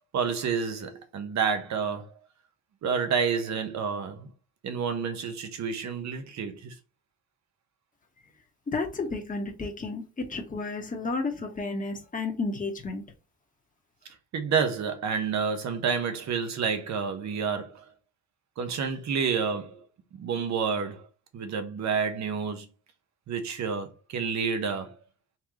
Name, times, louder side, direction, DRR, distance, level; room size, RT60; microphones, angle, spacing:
voice 1, 0.1-2.2 2.8-4.3 4.6-6.7 14.3-17.8 18.6-19.8 20.1-21.1 21.3-22.7 23.3-25.0, right 6 dB, 65° right, 1.1 m, -29 dB
voice 2, 8.7-13.0, left 3 dB, 25° left, 1.3 m, -32 dB
4.2 x 3.5 x 3.1 m
cardioid pair, 90°, 30 cm